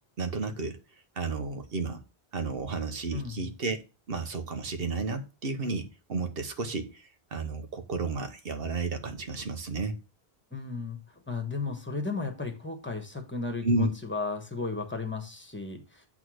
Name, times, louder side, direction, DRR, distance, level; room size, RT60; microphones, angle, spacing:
voice 1, 0.2-0.8 1.2-2.0 2.3-3.8 4.1-10.0 13.6-13.9, right 3 dB, 65° right, 1.2 m, -32 dB
voice 2, 3.1-3.4 10.5-16.1, left 3 dB, 10° left, 1.4 m, -34 dB
8.2 x 3.7 x 6.3 m
omnidirectional pair, 1.1 m